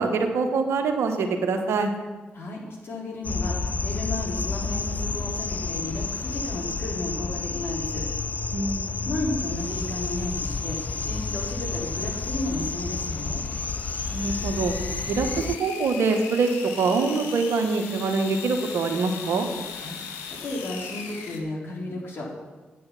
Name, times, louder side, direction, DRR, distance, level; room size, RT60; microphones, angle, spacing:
voice 1, 0.0-1.9 8.5-8.9 14.1-14.7 15.1-16.5 16.8-19.5, right 4 dB, 75° right, 5 dB, 1.3 m, -24 dB
voice 2, 2.3-8.0 9.1-13.4 19.8-20.0 20.3-22.3, left 1 dB, 60° left, -3 dB, 3.6 m, -33 dB
sound 1, 3.2-15.6, left 4 dB, 35° left, 0.3 m, -30 dB
sound 2, 4.5-7.0 9.5-21.4, left 6 dB, 90° left, 1.0 m, -41 dB
9.4 x 8.5 x 5.9 m, 1.2 s
hypercardioid pair, 40°, 5 cm